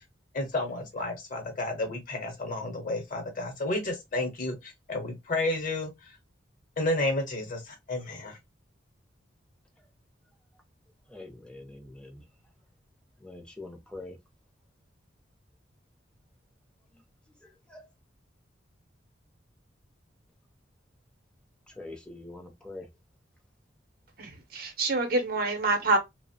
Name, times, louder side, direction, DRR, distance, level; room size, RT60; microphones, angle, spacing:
voice 1, 0.3-6.1 6.8-8.4, left 2 dB, 45° left, 0.9 m, -31 dB
voice 2, 11.1-12.2 13.2-14.2 16.9-17.0 17.4-17.9 21.7-22.9, left 2 dB, 5° left, 0.6 m, -45 dB
voice 3, 24.2-26.0, right 2 dB, 50° right, 0.7 m, -27 dB
2.9 x 2.0 x 2.7 m
head